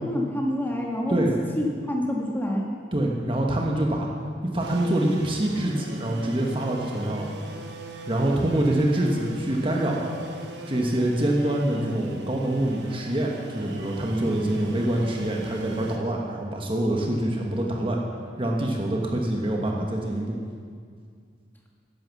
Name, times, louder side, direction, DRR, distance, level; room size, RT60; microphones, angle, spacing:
voice 1, 0.0-1.2 1.6-2.6, left 1 dB, 10° left, -1 dB, 1.7 m, -27 dB
voice 2, 1.1-1.4 2.9-4.1 4.5-7.3 8.1-10.2 10.7-18.0 18.4-20.4, right 1 dB, 30° right, 0 dB, 1.3 m, -25 dB
sound 1, 4.6-16.0, right 1 dB, 65° right, 1.3 m, -39 dB
12.5 x 11.0 x 7.2 m, 2.1 s
head